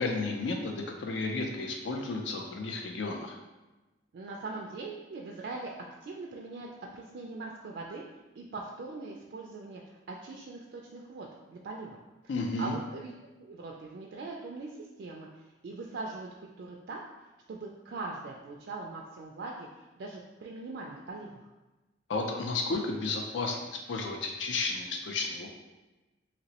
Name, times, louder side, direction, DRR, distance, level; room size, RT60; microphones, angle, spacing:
voice 1, 0.0-3.4 12.3-12.7 22.1-25.5, left 3 dB, 75° left, 2 dB, 0.4 m, -32 dB
voice 2, 4.1-5.7 6.0-6.7 6.9-8.0 8.3-9.8 10.1-12.0 12.6-13.1 13.4-15.3 15.6-17.0 17.5-19.7 20.0-21.3, right 3 dB, 60° right, -1 dB, 0.3 m, -41 dB
2.9 x 2.9 x 2.8 m, 1.1 s
head